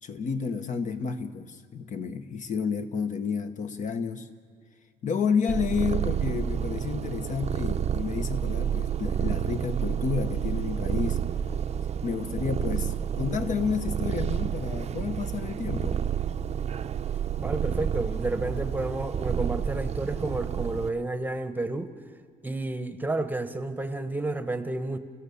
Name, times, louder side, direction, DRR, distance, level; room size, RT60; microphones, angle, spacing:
voice 1, 0.0-4.3 5.0-11.2 12.0-16.0, left 6 dB, 50° left, 8 dB, 1.4 m, -30 dB
Purr, 5.5-20.9, right 8 dB, 40° right, 0.7 m, -30 dB
voice 2, 17.4-21.9 22.4-25.0, right 2 dB, 10° right, 10 dB, 1.1 m, -31 dB
28.5 x 15.5 x 7.1 m, 2.1 s
cardioid pair, 110°, 17 cm